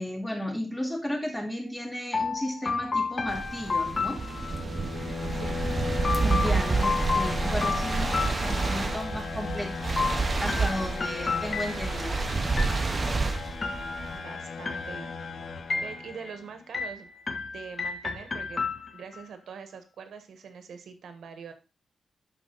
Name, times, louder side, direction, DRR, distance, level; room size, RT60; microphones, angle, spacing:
voice 1, 0.0-4.2 6.2-9.9 10.4-12.2, equal, 10° left, 1 dB, 2.4 m, -34 dB
sound 1, 2.1-4.9 6.0-9.0 10.0-12.1 12.6-13.2 13.6-14.3 14.6-15.3 15.7-16.3 16.7-19.2, left 4 dB, 35° left, 1.5 m, -32 dB
sound 2, 3.3-14.2, right 4 dB, 35° right, 0.8 m, -29 dB
sound 3, 3.7-16.5, left 5 dB, 75° left, 1.4 m, -37 dB
voice 2, 5.3-5.6 14.1-15.1 15.7-17.1 17.5-18.6 18.9-21.5, right 6 dB, 85° right, 7 dB, 1.3 m, -43 dB
12.0 x 4.6 x 4.0 m, 0.29 s
wide cardioid pair, 115°, 0 cm